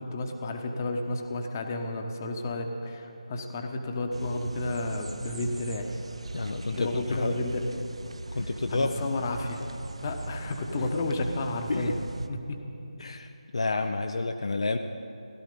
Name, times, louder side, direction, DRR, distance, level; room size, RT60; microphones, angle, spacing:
voice 1, 0.0-6.0 6.4-7.9 8.3-9.6 10.0-12.6 13.7-13.9, left 2 dB, 25° left, 4 dB, 1.0 m, -32 dB
sound 1, 4.1-12.3, right 2 dB, 55° right, 0.7 m, -40 dB
voice 2, 6.3-7.3 8.3-8.9 11.7-11.9 13.0-14.8, left 3 dB, 55° left, 6 dB, 0.6 m, -30 dB
16.0 x 12.5 x 5.4 m, 2.9 s
figure-of-eight pair, 155°, 4 cm